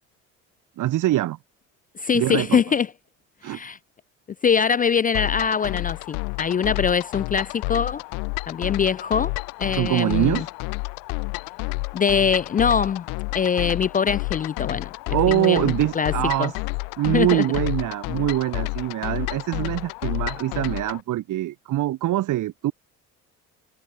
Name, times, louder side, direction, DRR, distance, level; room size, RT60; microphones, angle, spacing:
voice 1, 0.8-1.4 2.1-2.6 3.4-3.6 9.7-10.5 15.1-16.5 17.0-22.7, right 14 dB, 60° right, 1.1 m, -23 dB
voice 2, 2.0-2.9 3.4-3.8 4.4-8.0 8.5-9.3 9.6-10.5 11.9-13.1 13.3-16.1 16.4-16.5 17.1-17.4, left 6 dB, 25° left, 0.4 m, -23 dB
sound 1, 5.1-21.0, left 37 dB, 80° left, 0.8 m, -30 dB
hypercardioid pair, 65°, 35 cm